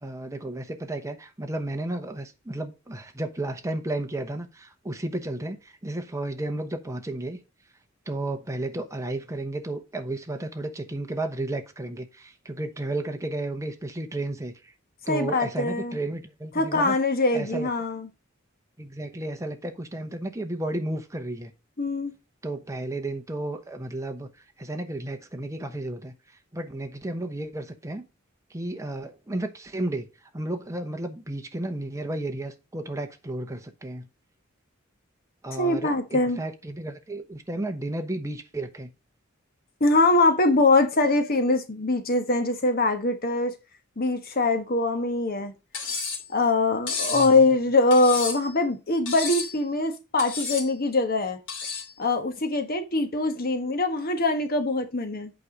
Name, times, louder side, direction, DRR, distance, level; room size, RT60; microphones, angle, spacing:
voice 1, 0.0-7.4 8.1-14.5 15.1-17.0 17.3-17.7 18.8-21.5 22.4-24.3 24.6-26.1 26.5-28.0 28.5-30.1 30.3-34.1 35.4-38.9 47.1-47.4, right 1 dB, 15° right, 1.0 m, -33 dB
voice 2, 15.1-16.0 16.5-18.1 21.8-22.1 35.6-36.4 39.8-43.5 44.0-45.5 46.3-51.4 52.0-55.3, left 2 dB, 45° left, 1.3 m, -23 dB
Cutlery silverware, 45.7-46.3 46.9-47.3 47.9-48.5 49.1-49.6 50.2-50.7 51.5-51.9, left 5 dB, 60° left, 2.9 m, -31 dB
8.4 x 4.8 x 5.2 m
head